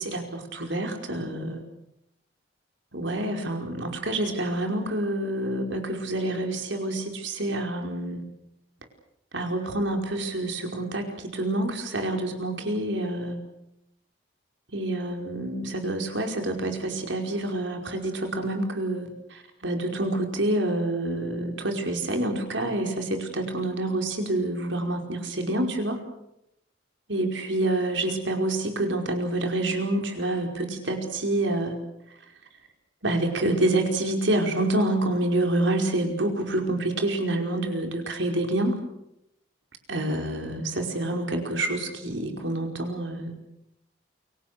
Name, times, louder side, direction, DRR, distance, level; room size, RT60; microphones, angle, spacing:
voice 1, 0.0-1.6 2.9-8.2 9.3-13.4 14.7-26.0 27.1-31.8 33.0-38.8 39.9-43.3, right 1 dB, 75° right, 4 dB, 5.1 m, -27 dB
29.5 x 24.0 x 6.8 m, 0.83 s
head